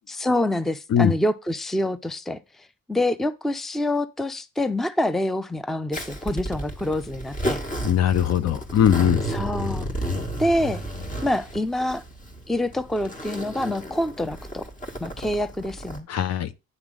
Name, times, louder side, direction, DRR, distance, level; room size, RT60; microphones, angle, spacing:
voice 1, 0.1-2.4 2.9-7.6 9.3-9.9 10.4-10.8 11.2-12.0 12.5-14.7 15.0-16.1, left 1 dB, ahead, 0.5 m, -26 dB
Zipper (clothing), 5.9-16.0, right 1 dB, 25° left, 1.9 m, -32 dB
voice 2, 7.8-9.2 16.1-16.5, left 9 dB, 60° left, 0.8 m, -20 dB
9.8 x 3.5 x 6.1 m
cardioid pair, 90°, 30 cm